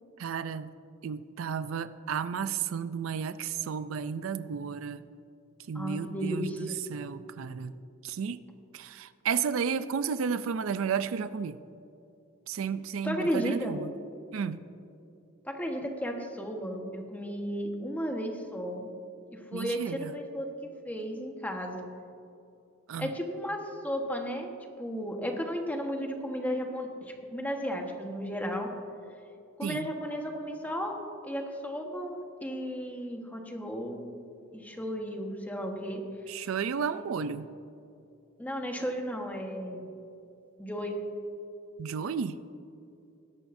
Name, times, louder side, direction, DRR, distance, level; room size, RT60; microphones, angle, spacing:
voice 1, 0.2-0.7 1.0-5.0 5.7-7.8 8.0-8.4 8.7-11.6 12.5-13.9 14.3-14.6 19.5-20.1 22.9-23.1 29.6-29.9 36.3-37.5 41.8-42.4, right 6 dB, 75° right, 13 dB, 0.4 m, -33 dB
voice 2, 5.7-6.8 13.0-13.7 15.4-18.9 19.3-21.8 23.0-24.5 24.8-28.7 29.6-32.2 32.4-34.2 34.5-36.0 36.4-36.5 36.9-37.1 38.4-39.9 40.6-41.0, equal, 10° left, 2 dB, 1.2 m, -34 dB
20.0 x 11.0 x 2.6 m, 2.7 s
head